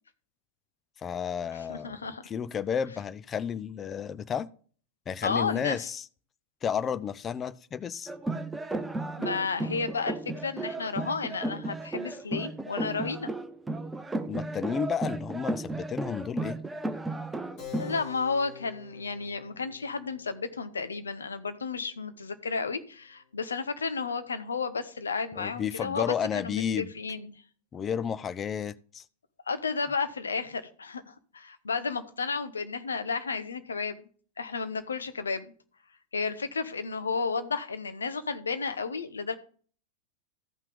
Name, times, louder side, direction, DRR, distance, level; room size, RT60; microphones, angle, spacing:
voice 1, 1.0-2.0 2.2-4.5 5.1-6.0 6.6-8.1 14.3-16.6 25.4-26.9 27.7-29.0, left 7 dB, 25° left, 0.5 m, -32 dB
voice 2, 1.7-2.2 5.2-5.8 9.2-13.3 17.8-27.3 29.5-34.0 34.4-35.5 36.1-39.4, left 4 dB, 75° left, 0.9 m, -32 dB
sound 1, 8.1-18.0, right 2 dB, 10° right, 0.7 m, -34 dB
Keyboard (musical), 17.6-23.7, left 7 dB, 40° left, 3.7 m, -48 dB
14.5 x 5.7 x 3.5 m
figure-of-eight pair, 90°, 0 cm